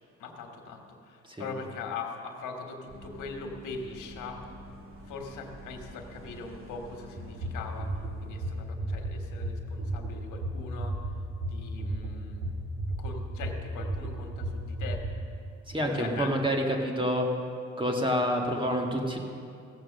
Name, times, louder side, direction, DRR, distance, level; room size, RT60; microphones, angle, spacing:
voice 1, 0.2-4.4 5.1-7.9 8.2-11.0 11.5-12.6 13.0-15.0 15.9-16.3, left 4 dB, 90° left, 3 dB, 1.5 m, -41 dB
sound 1, 2.9-8.5, right 1 dB, 45° right, 2.2 m, -48 dB
sound 2, 7.2-15.1, right 1 dB, 80° right, 2.1 m, -33 dB
voice 2, 15.7-17.3 17.8-19.2, equal, 15° right, 1 dB, 1.8 m, -28 dB
16.0 x 7.5 x 6.5 m, 2.6 s
cardioid pair, 90°, 30 cm